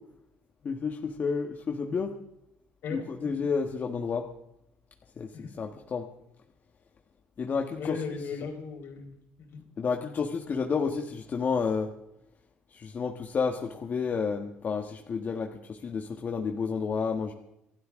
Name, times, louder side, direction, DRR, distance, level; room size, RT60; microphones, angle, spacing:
voice 1, 0.6-2.1 2.9-4.3 5.2-6.1 7.4-8.0 9.8-11.9 12.7-17.3, left 5 dB, 45° left, 3 dB, 1.6 m, -30 dB
voice 2, 2.8-3.3 5.3-5.5 7.8-9.1 9.4-9.6, left 5 dB, 65° left, 2 dB, 4.8 m, -37 dB
28.5 x 12.5 x 3.8 m, 0.83 s
supercardioid pair, 85°, 4 cm